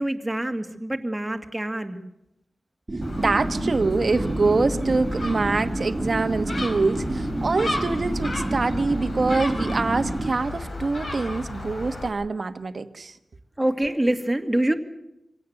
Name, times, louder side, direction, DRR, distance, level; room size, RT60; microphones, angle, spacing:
voice 1, 0.0-2.0 13.6-14.7, right 1 dB, 10° right, 6 dB, 2.1 m, -25 dB
sound 1, 2.9-10.3, right 2 dB, 35° right, 2.0 m, -29 dB
Gull seagull, 3.0-12.1, left 2 dB, 55° left, 4.1 m, -34 dB
voice 2, 3.2-13.1, right 3 dB, 50° right, 10 dB, 1.4 m, -25 dB
25.0 x 17.0 x 8.0 m, 0.88 s
wide cardioid pair, 100°, 0 cm